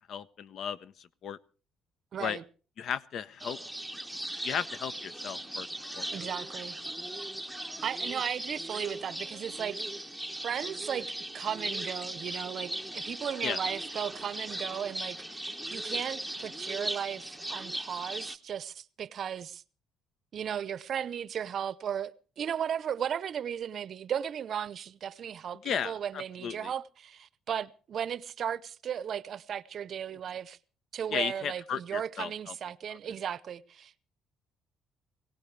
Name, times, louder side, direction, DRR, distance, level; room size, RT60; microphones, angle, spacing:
voice 1, 0.1-1.4 2.2-2.4 2.8-3.6 4.4-5.7 5.9-6.2 13.4-13.6 25.6-26.7 31.1-32.5 32.9-33.1, left 8 dB, 50° left, 0.8 m, -35 dB
voice 2, 2.1-2.4 6.1-6.8 7.8-9.8 10.4-19.6 20.3-30.6 30.9-34.0, right 8 dB, 45° right, 0.7 m, -36 dB
sound 1, 3.4-18.4, right 1 dB, ahead, 0.9 m, -38 dB
22.5 x 18.0 x 3.3 m
cardioid pair, 155°, 0 cm